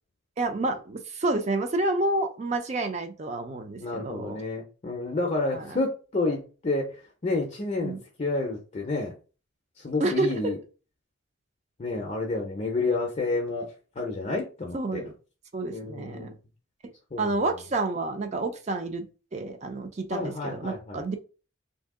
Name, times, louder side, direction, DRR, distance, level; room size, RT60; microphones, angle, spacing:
voice 1, 0.4-4.4 5.5-5.6 7.8-8.0 10.0-10.5 14.7-15.1 15.5-16.3 17.2-21.2, right 2 dB, 35° right, 7 dB, 0.4 m, -29 dB
voice 2, 3.8-9.1 9.8-10.6 11.8-15.0 15.7-16.3 17.1-17.4 20.1-21.0, left 3 dB, 35° left, 0 dB, 0.5 m, -30 dB
2.7 x 2.6 x 3.6 m, 0.35 s
head